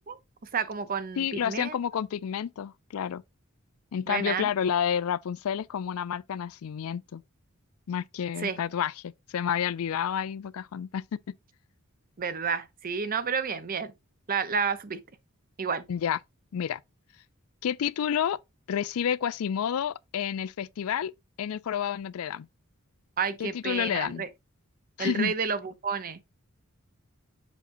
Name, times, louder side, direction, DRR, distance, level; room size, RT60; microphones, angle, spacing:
voice 1, 0.5-1.8 4.1-4.5 8.4-8.6 12.2-13.9 14.3-15.0 15.6-15.8 23.2-24.3 25.0-26.2, right 6 dB, 40° right, 0.7 m, -30 dB
voice 2, 1.2-3.2 3.9-7.2 7.9-11.0 15.9-16.2 16.5-16.8 17.6-18.4 18.7-21.1 21.4-22.5 23.4-24.2 25.0-25.3, left 8 dB, 80° left, 0.4 m, -30 dB
7.1 x 5.6 x 2.6 m
head